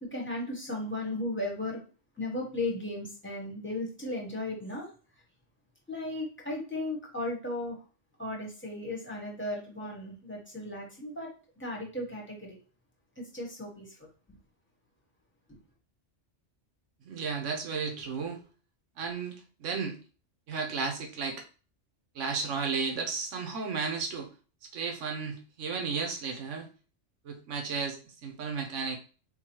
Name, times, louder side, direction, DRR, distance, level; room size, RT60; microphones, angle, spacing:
voice 1, 0.0-1.8 2.2-4.9 5.9-7.8 8.2-11.3 11.6-12.6 13.2-13.9 14.3-14.4 15.5-15.6, left 1 dB, 10° left, 0.9 m, -35 dB
voice 2, 17.1-18.4 19.0-19.4 19.6-20.0 20.5-21.4 22.2-24.3 24.7-26.7 27.2-29.0, right 5 dB, 90° right, 1.1 m, -33 dB
3.8 x 2.7 x 2.9 m
omnidirectional pair, 1.2 m